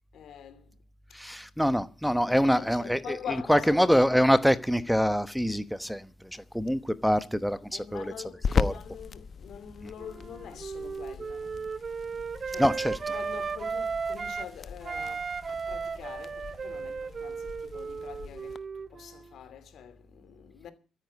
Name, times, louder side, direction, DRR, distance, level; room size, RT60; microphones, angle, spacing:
voice 1, 0.1-0.7 1.1-1.2 2.3-3.7 7.7-11.5 12.4-20.7, left 8 dB, 70° left, 2.6 m, -44 dB
voice 2, 1.1-3.2 3.5-8.1 8.6-8.7 12.6-12.9, equal, ahead, 1.0 m, -25 dB
sound 1, 6.4-18.6, left 6 dB, 50° left, 1.0 m, -38 dB
Wind instrument woodwind instrument, 10.0-14.5 14.8-19.3, right 5 dB, 40° right, 0.8 m, -35 dB
13.5 x 9.8 x 8.3 m
cardioid pair, 90°, 0 cm